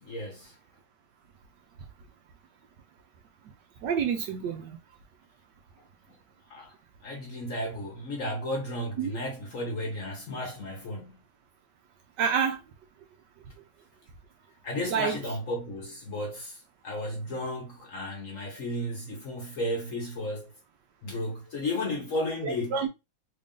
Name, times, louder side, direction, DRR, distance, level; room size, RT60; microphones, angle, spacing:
voice 1, 0.0-0.6 6.5-6.7 7.0-11.2 14.6-20.5 21.0-22.9, left 1 dB, 55° left, 1.0 m, -34 dB
voice 2, 3.8-4.8 9.0-9.2 12.2-12.6 14.9-15.2 22.4-22.9, right 7 dB, 75° right, 1.1 m, -28 dB
3.3 x 2.5 x 3.6 m
omnidirectional pair, 2.2 m